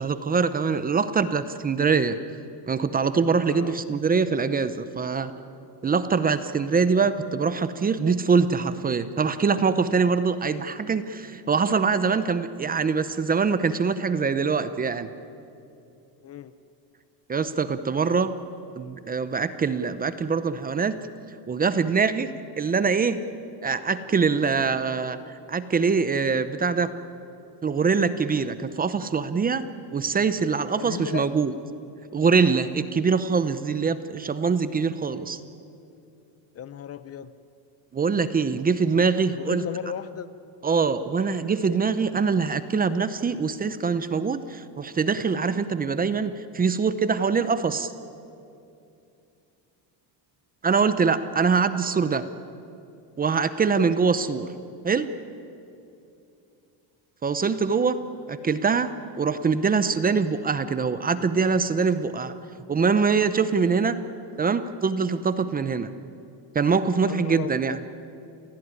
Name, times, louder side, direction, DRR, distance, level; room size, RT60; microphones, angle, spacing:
voice 1, 0.0-2.2 2.7-5.3 5.8-15.1 17.3-18.3 18.7-21.0 21.5-23.2 23.6-26.9 27.6-29.7 29.9-31.5 32.1-35.4 37.9-39.6 40.6-47.9 50.6-52.3 53.2-54.5 54.8-55.1 57.2-62.3 62.7-64.0 64.4-65.9 66.5-67.8, right 5 dB, 20° right, 12 dB, 0.7 m, -24 dB
voice 2, 3.4-3.8 16.2-16.5 30.7-31.3 36.5-37.3 39.3-40.3 67.0-67.8, left 9 dB, 35° left, 14 dB, 0.6 m, -35 dB
29.0 x 16.0 x 9.7 m, 2.7 s
cardioid pair, 155°, 44 cm